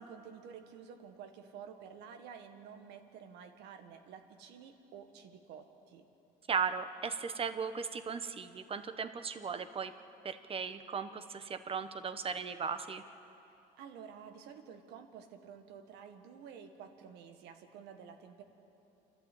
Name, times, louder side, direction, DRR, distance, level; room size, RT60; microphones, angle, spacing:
voice 1, 0.0-6.1 13.8-18.4, right 7 dB, 90° right, 6 dB, 1.6 m, -51 dB
voice 2, 6.5-9.9 10.2-13.0, right 6 dB, 35° right, 10 dB, 1.1 m, -37 dB
29.0 x 12.0 x 8.5 m, 2.9 s
cardioid pair, 110°, 17 cm